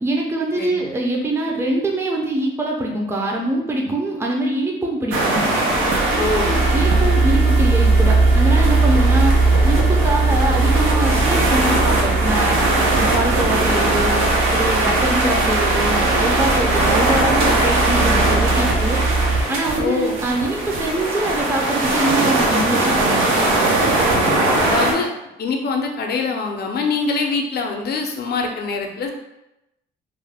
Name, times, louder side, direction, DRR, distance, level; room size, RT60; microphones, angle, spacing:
voice 1, 0.0-5.5 6.1-9.3 9.6-12.6 13.0-14.2 14.5-19.0 19.5-23.7, right 1 dB, 10° right, -1 dB, 0.5 m, -24 dB
sound 1, 5.1-24.9, right 2 dB, 90° right, 0.6 m, -20 dB
sound 2, 5.7-19.4, right 3 dB, 55° right, 1.2 m, -19 dB
voice 2, 6.2-6.6 19.8-20.1 24.6-25.1 25.4-29.1, left 4 dB, 55° left, 3 dB, 0.5 m, -24 dB
2.5 x 2.1 x 3.3 m, 0.91 s
cardioid pair, 90°, 20 cm